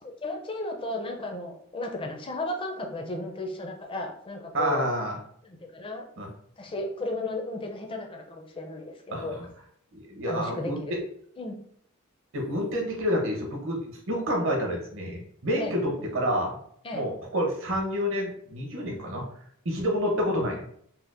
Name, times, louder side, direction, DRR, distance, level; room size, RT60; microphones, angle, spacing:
voice 1, 0.0-4.9 5.4-6.0 6.6-9.4 10.3-10.9 11.4-11.5 15.6-15.8 16.8-17.0, left 2 dB, 25° left, 3 dB, 0.5 m, -34 dB
voice 2, 4.5-5.2 6.2-6.3 9.1-9.3 9.9-10.8 12.3-16.6 16.9-19.3 19.6-20.6, equal, 60° right, 1 dB, 0.8 m, -28 dB
4.2 x 2.1 x 2.5 m, 0.66 s
head